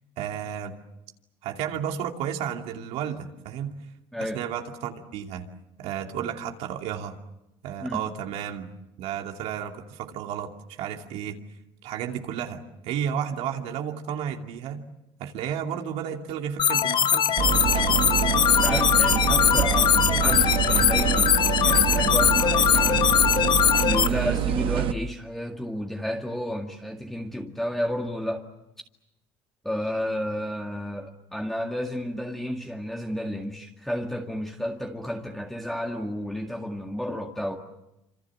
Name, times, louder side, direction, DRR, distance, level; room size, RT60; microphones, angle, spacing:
voice 1, 0.2-0.8 1.4-3.7 4.2-5.5 5.8-7.1 7.6-8.7 9.0-10.5 10.8-11.4 11.8-14.8 15.2-17.4 24.1-24.4, right 9 dB, 75° right, 3 dB, 2.6 m, -32 dB
sound 1, 16.6-24.1, left 10 dB, 45° left, 1.3 m, -21 dB
sound 2, 17.4-24.9, right 13 dB, 55° right, 1.1 m, -25 dB
voice 2, 18.6-23.2 23.8-28.4 29.6-37.6, equal, 5° left, 1 dB, 2.0 m, -31 dB
26.5 x 26.5 x 7.6 m, 0.89 s
cardioid pair, 115°, 11 cm